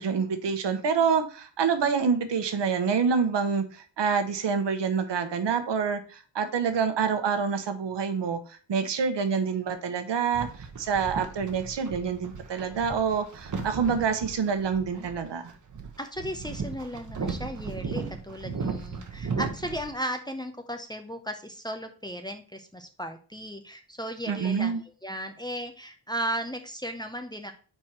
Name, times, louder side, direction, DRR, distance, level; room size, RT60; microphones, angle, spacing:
voice 1, 0.0-15.5 24.3-24.8, right 6 dB, 70° right, 8 dB, 1.1 m, -27 dB
sound 1, 10.3-19.9, right 4 dB, 40° right, 1.1 m, -36 dB
voice 2, 16.0-27.5, equal, 10° left, 5 dB, 0.7 m, -35 dB
4.7 x 4.5 x 5.8 m, 0.38 s
wide cardioid pair, 150°, 44 cm